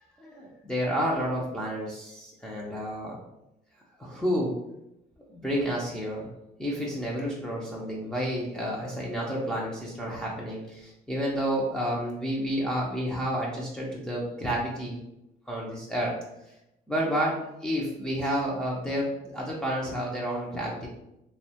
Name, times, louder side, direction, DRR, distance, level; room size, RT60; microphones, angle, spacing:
voice 1, 0.2-3.2 4.0-4.6 5.3-6.3 6.6-15.0 15.5-16.1 16.5-16.6 16.9-17.3 17.6-20.9, equal, 5° left, -5 dB, 0.4 m, -30 dB
2.7 x 2.1 x 2.7 m, 0.88 s
cardioid pair, 110°, 17 cm